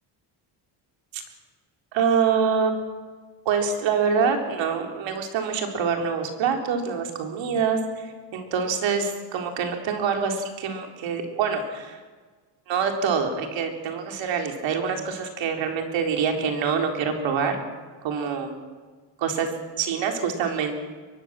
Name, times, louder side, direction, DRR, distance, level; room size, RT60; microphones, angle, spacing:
voice 1, 1.9-2.7 3.5-12.0 12.7-17.6 18.0-18.5 19.2-19.5 19.8-20.7, right 6 dB, 70° right, 4 dB, 3.8 m, -25 dB
23.0 x 18.5 x 7.5 m, 1.4 s
cardioid pair, 150°, 46 cm